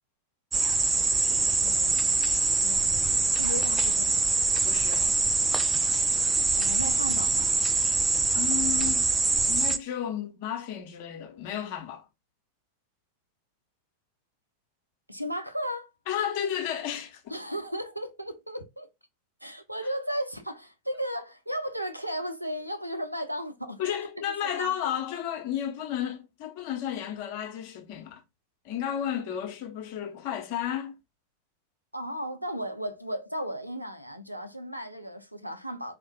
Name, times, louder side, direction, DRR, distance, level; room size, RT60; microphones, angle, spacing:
sound 1, 0.5-9.8, right 3 dB, 15° right, 0.4 m, -24 dB
voice 1, 1.3-4.3 6.5-7.6 15.1-15.9 17.3-18.9 19.4-24.0 24.6-24.9 31.9-36.0, equal, 90° right, 0.6 m, -35 dB
voice 2, 4.6-5.0 8.3-9.1 9.5-12.1 16.1-17.2 23.8-28.2 28.6-30.9, left 10 dB, 45° left, 0.9 m, -32 dB
4.5 x 2.4 x 2.2 m
figure-of-eight pair, 90°, 0 cm